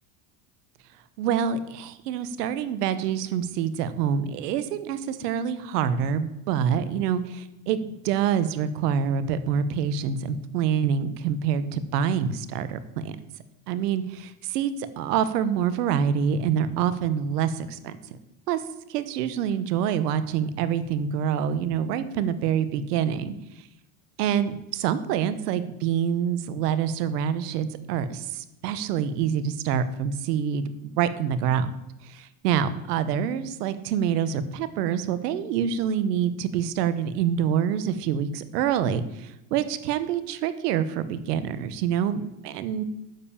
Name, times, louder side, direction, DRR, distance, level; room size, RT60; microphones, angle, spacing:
voice 1, 1.2-13.1 13.7-18.2 18.5-18.6 18.9-23.3 24.2-30.6 31.0-31.7 32.0-42.8, right 8 dB, 85° right, 13 dB, 1.2 m, -26 dB
9.5 x 7.6 x 7.0 m, 0.92 s
supercardioid pair, 100°, 46 cm